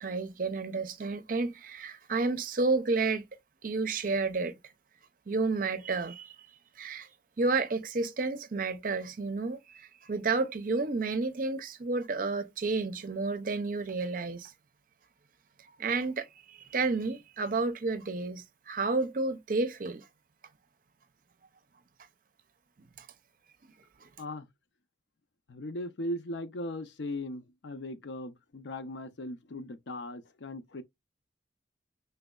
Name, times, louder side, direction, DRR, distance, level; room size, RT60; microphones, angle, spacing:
voice 1, 0.0-3.2 3.6-4.6 5.3-6.3 6.8-7.1 7.4-14.5 15.8-20.1 23.0-23.1 24.0-24.1, right 3 dB, 50° right, 0.6 m, -31 dB
voice 2, 25.5-30.8, left 1 dB, 80° left, 0.6 m, -38 dB
5.1 x 3.3 x 2.3 m
head